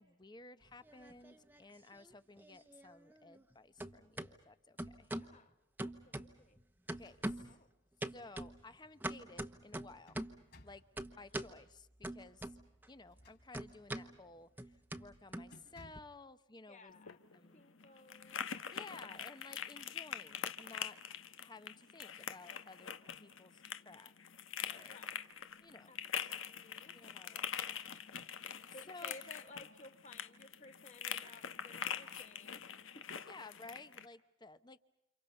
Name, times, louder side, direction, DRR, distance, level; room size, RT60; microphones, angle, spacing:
voice 1, 0.0-5.1 7.0-7.5 8.1-10.2 10.6-10.8 11.1-12.4 12.9-14.5 15.0-16.9 17.3-17.6 18.7-21.0 21.4-24.1 24.7-25.0 25.6-25.9 26.9-27.5 28.9-29.3 33.3-34.8, left 3 dB, 20° left, 12 dB, 0.9 m, -55 dB
sound 1, 0.7-1.6 1.9-3.5 3.8-4.3 4.8-5.3 5.8-6.6 6.9-7.6 8.0-10.4 11.0-11.6 12.0-12.9 13.1-16.0, right 1 dB, 10° right, 1.0 m, -44 dB
voice 2, 5.1-5.6 5.8-6.6 7.5-7.7 11.0-11.4 16.7-17.2 17.5-18.4 24.9-25.2 25.9-27.0 27.3-27.4 28.6-33.4, left 2 dB, 35° left, 7 dB, 1.9 m, -57 dB
sound 2, 6.9-7.6 8.0-8.1 9.6-10.9 13.0-13.9 14.4-14.6 14.9-15.1 15.5-16.2, left 1 dB, 55° left, 5.4 m, -61 dB
sound 3, 16.9-34.1, left 8 dB, 80° left, 1.2 m, -44 dB
30.0 x 28.0 x 5.4 m, 0.86 s
head